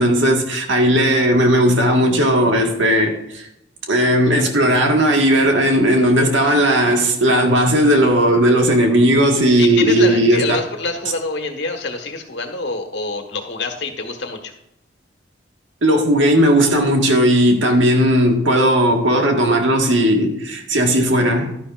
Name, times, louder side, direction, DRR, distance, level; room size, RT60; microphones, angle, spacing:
voice 1, 0.0-3.5 3.9-10.4 15.8-21.5, equal, 80° right, 1.7 m, -16 dB
voice 2, 9.6-14.5, left 3 dB, 65° left, 1.5 m, -26 dB
11.5 x 10.5 x 2.5 m
head